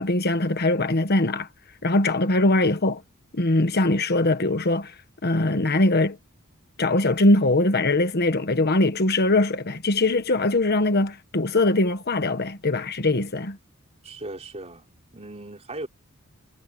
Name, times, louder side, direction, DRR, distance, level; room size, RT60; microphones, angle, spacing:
voice 1, 0.0-1.5 1.8-3.0 3.3-4.9 5.2-6.2 6.8-13.6, left 2 dB, 50° left, 1.4 m, -21 dB
voice 2, 14.0-14.9 15.1-15.9, right 2 dB, 30° right, 4.1 m, -37 dB
head